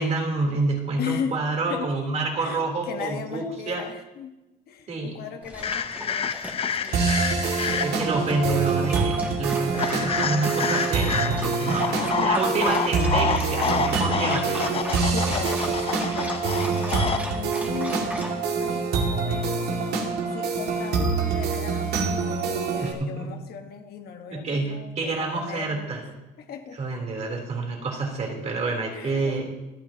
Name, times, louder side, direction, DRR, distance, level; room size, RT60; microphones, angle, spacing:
voice 1, 0.0-3.8 4.9-5.2 7.7-14.7 22.8-23.3 24.3-26.0 26.8-29.5, right 3 dB, 40° right, 0 dB, 3.5 m, -28 dB
voice 2, 1.0-1.4 1.7-1.9 2.2-4.3 4.7-6.3 6.8-9.0 11.8-12.3 15.1-26.0 26.4-26.8 28.9-29.4, left 7 dB, 65° left, 5 dB, 1.4 m, -37 dB
Dog, 5.4-18.3, equal, 10° right, 2.3 m, -37 dB
sound 1, 5.6-8.2 9.7-17.2, left 7 dB, 35° left, 0.6 m, -28 dB
sound 2, 6.9-22.9, right 5 dB, 75° right, 2.2 m, -26 dB
26.0 x 9.1 x 2.9 m, 1.0 s
cardioid pair, 110°, 17 cm